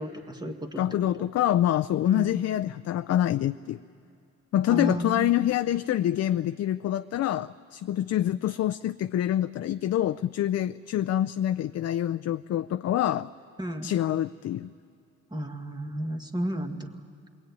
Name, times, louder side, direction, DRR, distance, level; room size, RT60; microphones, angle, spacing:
voice 1, 0.0-0.8 2.1-2.3 4.7-5.3 13.6-13.9 15.3-17.0, equal, 15° right, 4 dB, 1.6 m, -33 dB
voice 2, 0.8-3.8 4.5-13.3 13.8-14.7, left 12 dB, 55° left, 12 dB, 0.5 m, -26 dB
24.0 x 20.5 x 9.4 m, 2.5 s
cardioid pair, 90°, 30 cm